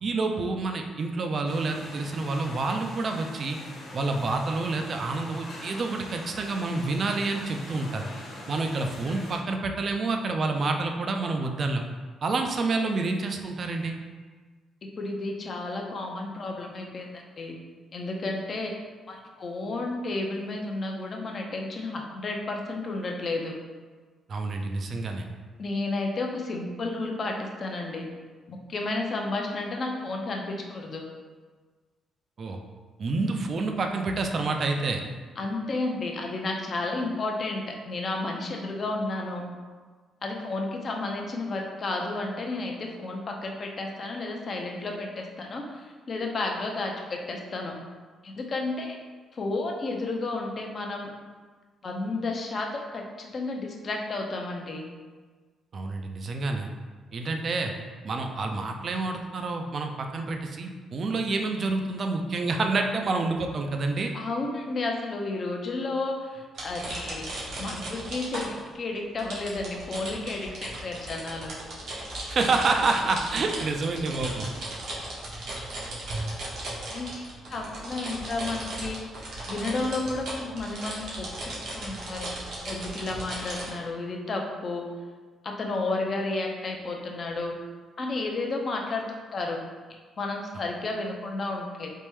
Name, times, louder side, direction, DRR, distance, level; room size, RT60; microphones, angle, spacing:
voice 1, 0.0-3.6 3.9-8.1 8.5-11.8 12.2-14.0 24.3-25.3 32.4-32.6 33.0-35.0 55.7-56.7 57.1-57.7 58.0-64.1 72.3-74.5, right 3 dB, 50° right, 4 dB, 0.3 m, -28 dB
sound 1, 1.4-9.4, left 1 dB, 80° left, 0.9 m, -43 dB
voice 2, 15.0-17.6 17.9-18.7 19.1-23.5 25.6-28.1 28.5-31.0 35.4-39.4 40.2-47.7 48.2-49.0 49.3-51.1 51.8-54.9 64.1-67.3 67.6-71.5 76.9-79.0 79.5-82.3 82.7-84.9 85.4-87.6 88.0-89.6 90.2-91.9, left 2 dB, 45° left, 1 dB, 0.5 m, -32 dB
sound 2, 66.5-68.7 69.2-83.7, right 1 dB, 75° right, 0.8 m, -36 dB
3.4 x 2.1 x 3.0 m, 1.4 s
cardioid pair, 90°, 0 cm